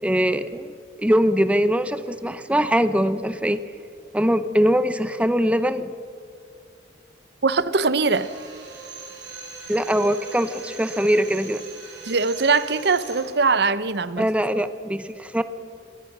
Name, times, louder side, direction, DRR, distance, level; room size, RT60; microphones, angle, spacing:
voice 1, 0.0-3.6 4.1-5.9 9.7-11.6 14.2-15.4, equal, 5° right, 12 dB, 0.8 m, -22 dB
voice 2, 7.4-8.3 12.0-14.3, right 4 dB, 65° right, 15 dB, 0.8 m, -21 dB
Drill, 8.1-13.4, right 3 dB, 85° right, 4.3 m, -40 dB
26.0 x 19.5 x 6.1 m, 2.3 s
head